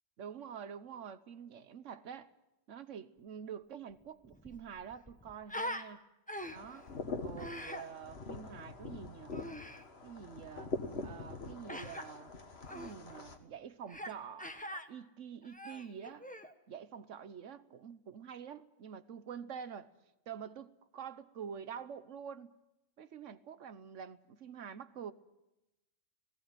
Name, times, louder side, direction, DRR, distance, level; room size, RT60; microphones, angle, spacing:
voice 1, 0.2-2.3 2.7-6.0 6.5-6.9 7.2-9.4 10.0-10.7 11.0-12.3 12.7-16.3 16.7-19.9 20.3-22.5 23.0-25.1, right 7 dB, 70° right, 1.3 m, -47 dB
Human voice, 3.9-4.0 4.2-5.9 6.3-6.8 7.4-7.8 9.3-9.8 11.7-12.0 12.7-12.9 13.9-14.1 14.4-14.9 15.4-16.5, left 1 dB, 5° left, 1.2 m, -43 dB
sound 1, 6.6-13.4, left 3 dB, 55° left, 1.8 m, -44 dB
18.0 x 18.0 x 9.1 m
omnidirectional pair, 1.3 m